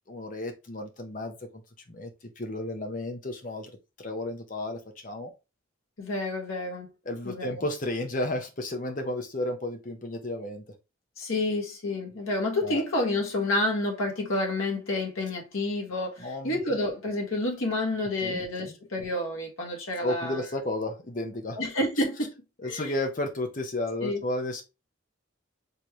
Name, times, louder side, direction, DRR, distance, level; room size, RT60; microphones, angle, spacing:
voice 1, 0.1-1.3 1.9-2.1 2.4-3.7 4.0-5.3 7.1-10.6 12.6-12.8 16.2-16.6 18.2-18.7 20.0-21.6 22.6-24.6, left 1 dB, 40° left, 0.9 m, -32 dB
voice 2, 6.0-6.9 7.2-7.6 11.2-20.4 21.5-22.3 22.6-22.9 24.0-24.2, left 1 dB, 90° left, 1.6 m, -29 dB
4.4 x 3.3 x 3.1 m
head